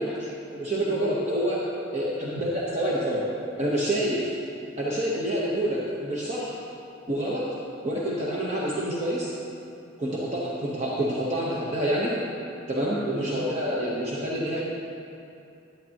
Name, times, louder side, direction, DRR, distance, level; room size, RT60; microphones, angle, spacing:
voice 1, 0.0-0.3 0.9-1.0 2.2-2.3 13.2-13.3 14.6-14.7, equal, 10° right, -7 dB, 2.0 m, -42 dB
voice 2, 0.5-1.6 1.9-3.2 3.6-4.3 4.8-6.5 7.1-7.5 7.8-9.3 10.0-12.1 12.7-14.6, right 1 dB, 35° right, -6 dB, 0.9 m, -27 dB
11.0 x 8.7 x 2.9 m, 2.7 s
head